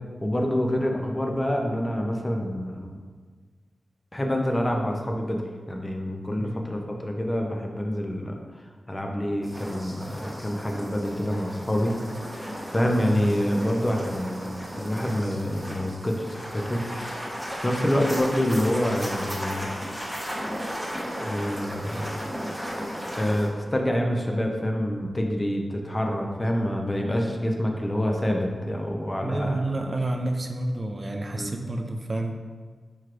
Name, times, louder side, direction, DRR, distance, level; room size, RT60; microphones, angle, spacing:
voice 1, 0.2-2.9 4.1-5.4 5.7-8.4 8.9-12.0 12.2-16.8 17.6-19.7 21.2-22.1 23.1-29.6 31.4-31.5, equal, 25° left, 2 dB, 0.5 m, -27 dB
sound 1, 9.4-23.5, equal, 5° right, 0.9 m, -35 dB
voice 2, 29.2-32.3, right 2 dB, 45° right, 3 dB, 0.3 m, -29 dB
4.5 x 3.1 x 2.5 m, 1.5 s
cardioid pair, 55°, 0 cm